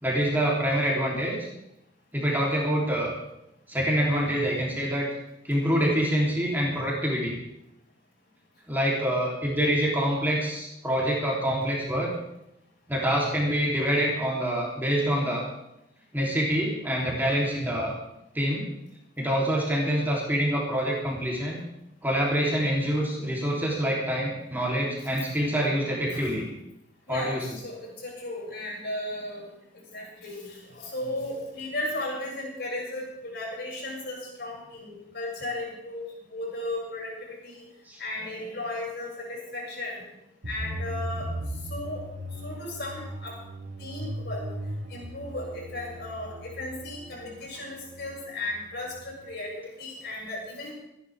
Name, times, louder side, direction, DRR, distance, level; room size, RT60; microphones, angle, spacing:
voice 1, 0.0-1.4 2.1-3.1 3.7-5.1 5.4-7.4 8.7-12.1 12.9-15.5 16.1-18.0 18.3-18.7 19.2-21.6 22.0-26.5 27.1-27.5 37.9-38.0, equal, 10° right, -4 dB, 3.5 m, -26 dB
voice 2, 27.1-29.4 29.9-36.0 36.3-37.1 37.4-37.6 38.0-40.0 40.5-41.3 41.7-42.0 42.4-43.3 43.8-44.4 44.9-50.7, left 1 dB, 60° left, -3 dB, 7.1 m, -35 dB
sound 1, 40.4-49.3, right 1 dB, 75° right, 1.7 m, -38 dB
26.0 x 11.0 x 3.7 m, 0.85 s
head